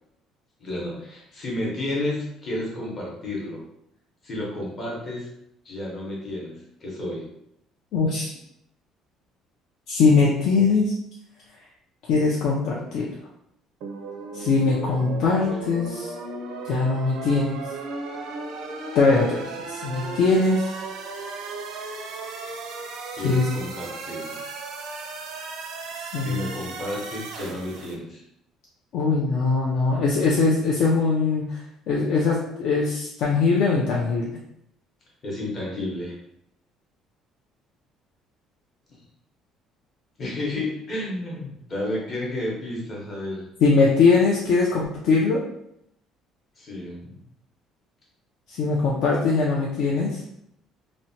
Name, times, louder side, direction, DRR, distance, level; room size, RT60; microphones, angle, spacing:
voice 1, 0.6-3.6 4.2-5.3 5.6-6.5 6.8-7.2 23.2-24.4 26.0-28.2 35.2-36.2 40.2-43.5 46.6-47.2, left 1 dB, 30° left, -4 dB, 0.8 m, -31 dB
voice 2, 7.9-8.3 9.9-10.9 12.1-13.1 14.3-16.1 16.7-17.6 18.9-20.7 23.2-23.5 26.1-26.4 28.9-31.6 31.9-34.4 43.6-45.4 48.5-50.2, left 4 dB, 55° left, -4 dB, 0.4 m, -21 dB
sound 1, 13.8-27.9, right 3 dB, 75° right, 0.4 m, -36 dB
2.8 x 2.1 x 2.7 m, 0.76 s
cardioid pair, 180°, 0 cm